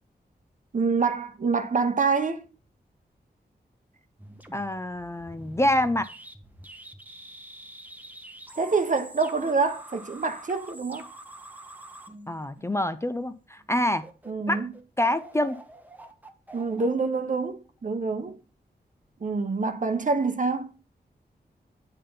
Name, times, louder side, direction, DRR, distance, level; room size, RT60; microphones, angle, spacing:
voice 1, 0.7-2.4 8.6-11.1 14.3-14.7 16.5-18.4 19.2-20.7, right 4 dB, 50° right, 0.9 m, -26 dB
sound 1, 4.2-13.0 13.6-13.7 14.0-17.9, right 1 dB, 10° right, 0.8 m, -46 dB
voice 2, 4.5-6.1 12.3-14.0 14.5-14.7 15.0-15.6, left 1 dB, 15° left, 0.4 m, -26 dB
8.6 x 3.7 x 5.4 m
wide cardioid pair, 100°, 17 cm